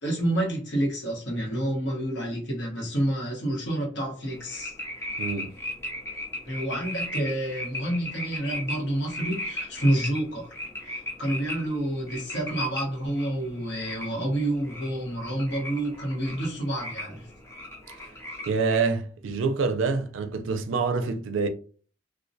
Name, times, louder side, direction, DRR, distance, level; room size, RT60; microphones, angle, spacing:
voice 1, 0.0-4.7 6.4-10.5 10.9-17.3, right 1 dB, 65° left, 1.0 m, -28 dB
sound 1, 4.2-18.8, left 1 dB, 15° left, 0.5 m, -37 dB
voice 2, 5.2-5.5 18.5-21.5, right 4 dB, 90° right, 0.4 m, -26 dB
2.2 x 2.1 x 2.6 m
head